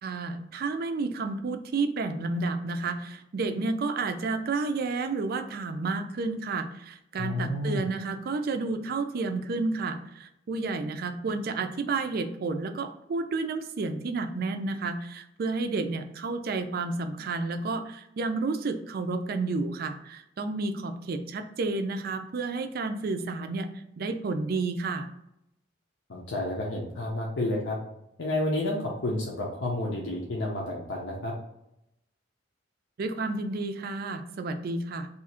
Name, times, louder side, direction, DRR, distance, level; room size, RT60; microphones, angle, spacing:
voice 1, 0.0-23.7 24.0-25.1 33.0-35.1, right 3 dB, 55° right, 8 dB, 0.4 m, -31 dB
voice 2, 7.2-7.8 26.1-27.8 28.2-31.3, left 1 dB, 80° left, -3 dB, 0.6 m, -30 dB
2.8 x 2.4 x 4.1 m, 0.82 s
head